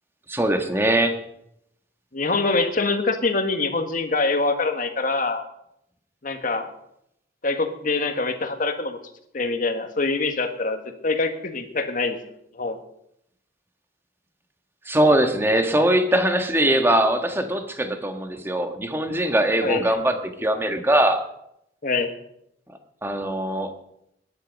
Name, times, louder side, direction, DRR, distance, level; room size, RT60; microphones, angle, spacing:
voice 1, 0.3-1.2 14.8-21.2 23.0-23.7, right 1 dB, 15° right, 5 dB, 1.5 m, -21 dB
voice 2, 2.1-5.4 6.2-6.7 7.4-9.0 9.3-12.2 12.5-12.8 19.6-20.0 21.8-22.1, left 3 dB, 50° left, 6 dB, 1.6 m, -24 dB
19.5 x 10.5 x 5.3 m, 0.78 s
head